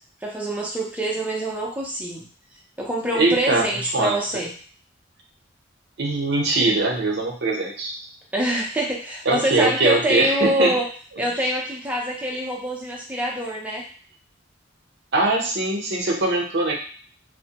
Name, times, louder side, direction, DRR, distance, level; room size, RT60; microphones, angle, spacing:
voice 1, 0.2-2.2 2.8-4.5 8.3-10.8 11.2-13.9, right 1 dB, 5° right, -2 dB, 0.5 m, -25 dB
voice 2, 3.1-4.1 6.0-7.9 9.3-10.7 15.1-16.7, right 2 dB, 60° right, 0 dB, 0.6 m, -22 dB
2.1 x 2.1 x 2.8 m, 0.44 s
head